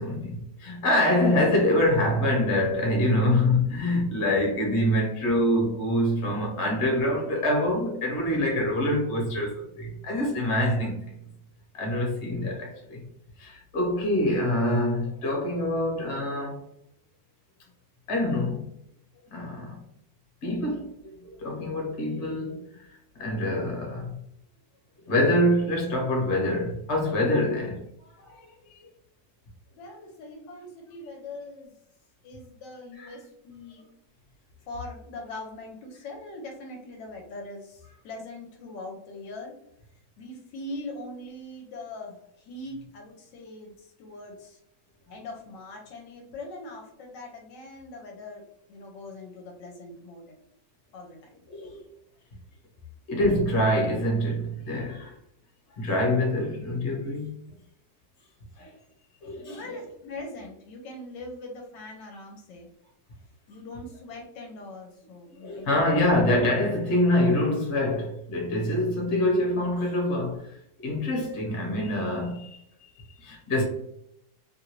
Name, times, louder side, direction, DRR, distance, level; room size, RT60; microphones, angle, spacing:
voice 1, 0.0-11.0 11.7-13.1 13.4-16.6 18.1-18.7 19.3-19.8 20.4-24.2 25.0-28.8 33.0-33.1 51.5-51.8 53.1-55.2 55.8-57.3 58.6-58.7 59.2-59.6 65.4-73.6, left 1 dB, 45° left, 1.1 m, -25 dB
voice 2, 29.7-31.8 32.2-33.9 34.6-39.6 40.2-44.6 45.1-50.3 50.9-51.4 59.5-62.7 63.5-66.1, left 2 dB, 75° left, 1.2 m, -41 dB
3.1 x 2.4 x 2.9 m
omnidirectional pair, 2.0 m